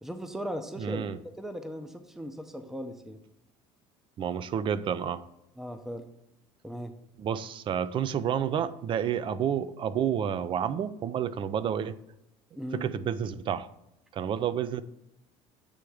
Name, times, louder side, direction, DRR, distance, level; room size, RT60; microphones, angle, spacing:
voice 1, 0.0-3.2 5.6-6.0 6.6-6.9 12.5-12.9, equal, 5° right, 7 dB, 0.6 m, -38 dB
voice 2, 0.8-1.2 4.2-5.2 7.2-11.9 12.7-13.7 14.1-14.8, right 8 dB, 40° right, 16 dB, 0.4 m, -30 dB
8.4 x 3.4 x 4.8 m, 0.86 s
cardioid pair, 110°, 13 cm